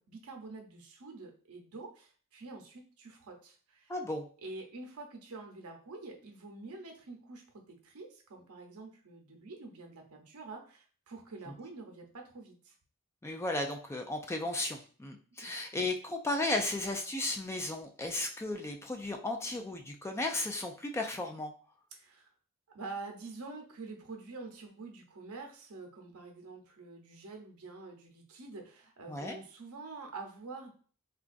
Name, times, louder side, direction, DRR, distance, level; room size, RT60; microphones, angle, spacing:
voice 1, 0.0-3.9 4.4-7.4 7.7-12.7 15.4-15.5 21.9-22.3 22.7-30.7, right 3 dB, 90° right, 2 dB, 0.7 m, -47 dB
voice 2, 3.9-4.2 13.2-21.5 29.1-29.4, left 2 dB, 10° left, 3 dB, 0.3 m, -35 dB
3.8 x 2.3 x 2.5 m, 0.42 s
head